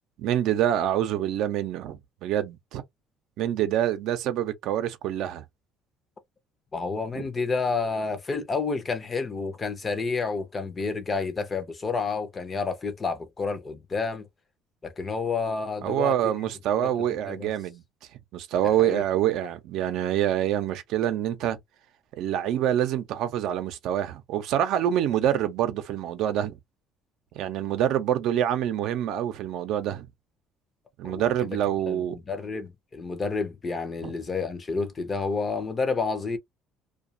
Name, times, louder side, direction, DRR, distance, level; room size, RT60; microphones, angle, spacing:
voice 1, 0.2-2.8 3.4-5.4 7.2-7.3 15.8-17.8 18.3-21.6 22.2-26.6 27.3-30.1 31.0-32.2 34.0-34.1, right 11 dB, 65° right, 0.6 m, -26 dB
voice 2, 6.7-14.3 14.8-16.3 16.8-16.9 17.3-17.5 18.8-19.0 31.0-31.3 31.9-36.4, left 4 dB, 25° left, 0.6 m, -30 dB
2.4 x 2.3 x 2.6 m
cardioid pair, 135°, 0 cm